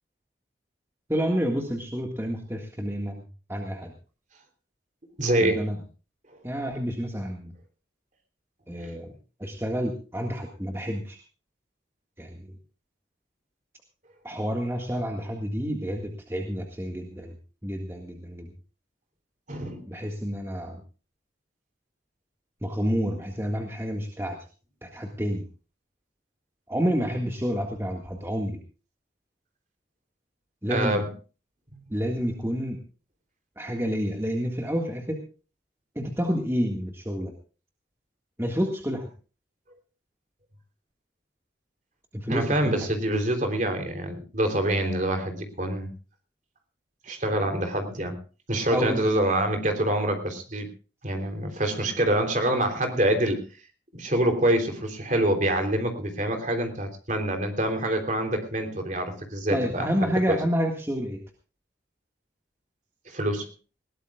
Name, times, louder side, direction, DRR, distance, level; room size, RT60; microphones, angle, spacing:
voice 1, 1.1-3.2 3.5-3.9 5.4-5.8 6.4-7.5 8.7-9.1 9.4-11.2 12.2-12.5 14.2-17.3 17.6-18.5 19.9-20.8 22.6-24.4 24.8-25.4 26.7-28.6 30.6-31.0 31.9-32.8 33.6-35.2 36.0-37.3 38.4-39.1 42.1-42.9 48.7-49.0 59.5-61.2, equal, 15° right, 2 dB, 1.8 m, -29 dB
voice 2, 5.2-5.6 19.5-19.8 30.7-31.1 42.3-45.9 47.1-48.2 48.5-50.7 51.0-53.4 53.9-60.4 63.1-63.5, right 1 dB, 40° right, 5 dB, 3.3 m, -26 dB
20.5 x 18.5 x 2.4 m, 0.35 s
head